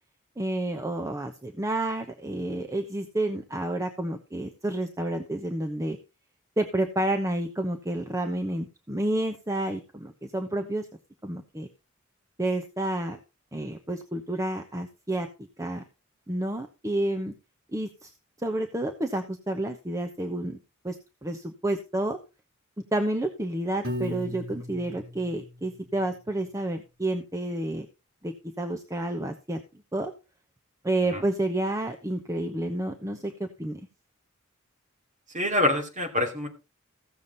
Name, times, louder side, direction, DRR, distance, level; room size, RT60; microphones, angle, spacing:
voice 1, 0.4-6.0 6.6-10.9 11.2-11.7 12.4-13.2 13.5-15.3 15.6-15.8 16.3-17.3 17.7-18.1 18.4-20.6 20.8-22.2 22.9-27.9 28.2-29.6 29.9-30.1 30.8-33.8, right 1 dB, 15° right, 4 dB, 0.9 m, -30 dB
Piano, 23.8-26.1, left 1 dB, 85° right, 3.2 m, -37 dB
voice 2, 35.3-36.5, left 1 dB, 35° right, 2 dB, 3.0 m, -25 dB
15.5 x 7.2 x 4.1 m, 0.29 s
head